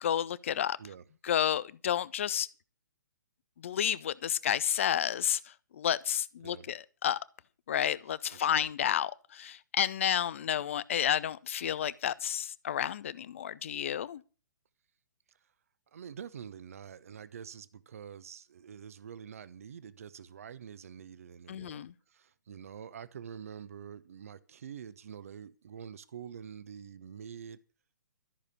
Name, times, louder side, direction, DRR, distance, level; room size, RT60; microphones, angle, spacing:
voice 1, 0.0-0.8 1.2-2.5 3.6-7.2 7.7-14.2 21.5-21.9, left 10 dB, 45° left, 0.7 m, -31 dB
voice 2, 8.3-8.6 15.9-27.6, right 8 dB, 50° right, 0.9 m, -46 dB
13.5 x 6.7 x 8.4 m
figure-of-eight pair, 125°, 10 cm